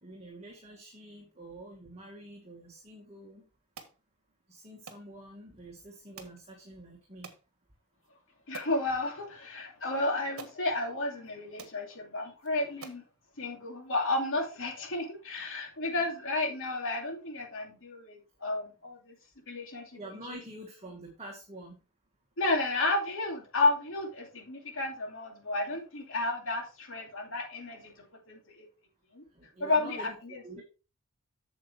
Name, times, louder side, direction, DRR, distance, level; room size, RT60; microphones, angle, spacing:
voice 1, 0.0-3.4 4.5-7.3 19.9-21.8 29.3-30.6, right 1 dB, 30° right, 1.8 m, -47 dB
sound 1, 3.8-4.0 4.9-5.1 6.2-6.4 7.2-7.4 8.0-8.1 8.5-8.8 9.8-9.9 10.4-10.6 11.3-11.4 11.6-11.8 12.4-12.5 12.8-13.1, right 5 dB, 65° right, 1.4 m, -46 dB
voice 2, 8.5-13.0 13.4-19.1 19.5-20.0 22.4-28.7 29.1-29.2 29.6-30.6, left 2 dB, 65° left, 2.6 m, -32 dB
8.5 x 7.2 x 3.4 m
head